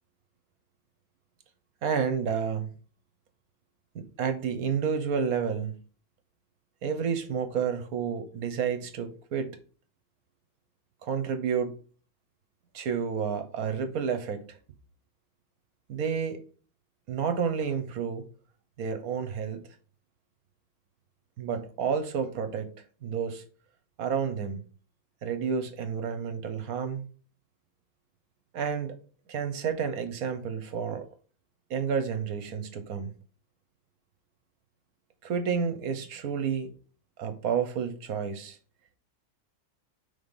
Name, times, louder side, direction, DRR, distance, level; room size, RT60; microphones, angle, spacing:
voice 1, 1.8-2.7 3.9-5.8 6.8-9.6 11.0-11.8 12.7-14.6 15.9-16.4 17.1-18.3 18.8-19.6 21.4-22.7 23.0-23.4 24.0-24.6 25.2-27.0 28.5-28.9 29.3-31.1 31.7-33.1 35.2-36.7 37.2-38.6, right 6 dB, 70° right, 1.3 m, -30 dB
5.6 x 3.6 x 5.2 m
omnidirectional pair, 1.7 m